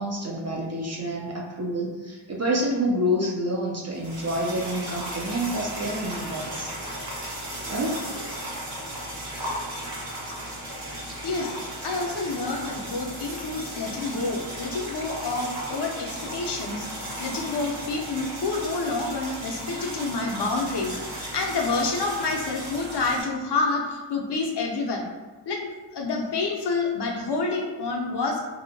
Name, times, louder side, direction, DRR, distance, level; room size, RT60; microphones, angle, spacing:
voice 1, 0.0-6.7 7.7-8.0, equal, 35° right, -2 dB, 0.4 m, -28 dB
sound 1, 3.9-23.2, right 1 dB, 50° right, 1.1 m, -35 dB
voice 2, 11.2-11.6 11.8-25.1 25.5-28.5, left 3 dB, 55° left, 0 dB, 0.5 m, -28 dB
2.7 x 2.1 x 2.6 m, 1.2 s
cardioid pair, 75°, 49 cm